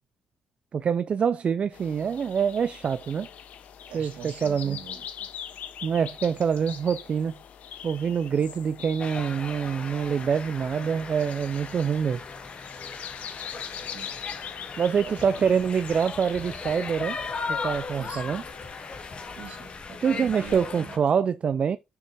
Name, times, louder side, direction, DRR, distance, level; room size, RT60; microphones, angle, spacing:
voice 1, 0.7-3.3 3.9-4.8 5.8-7.4 7.8-12.2 14.8-17.2 17.5-18.4 20.0-21.8, right 7 dB, 50° right, 0.4 m, -25 dB
sound 1, 1.7-19.8, left 9 dB, 65° left, 1.2 m, -43 dB
voice 2, 3.9-5.1 6.7-6.8 13.6-14.2 15.0-15.5 18.0-18.4 19.3-21.0, right 7 dB, 70° right, 3.1 m, -44 dB
sound 2, 9.0-21.0, left 4 dB, 45° left, 2.0 m, -37 dB
6.9 x 6.5 x 2.9 m
hypercardioid pair, 55°, 3 cm